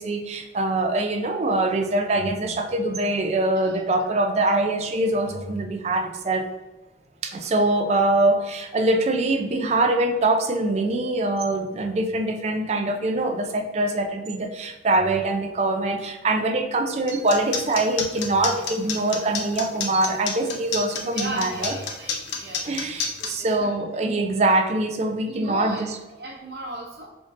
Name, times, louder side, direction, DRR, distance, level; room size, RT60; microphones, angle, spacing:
voice 1, 0.0-6.5 7.2-21.7 22.6-25.8, right 2 dB, 35° right, 5 dB, 0.3 m, -23 dB
voice 2, 3.5-4.2 21.0-23.7 25.3-27.1, right 1 dB, 55° right, -4 dB, 0.9 m, -36 dB
sound 1, 17.1-23.3, left 6 dB, 70° left, 0.6 m, -29 dB
3.6 x 2.5 x 3.7 m, 1.1 s
head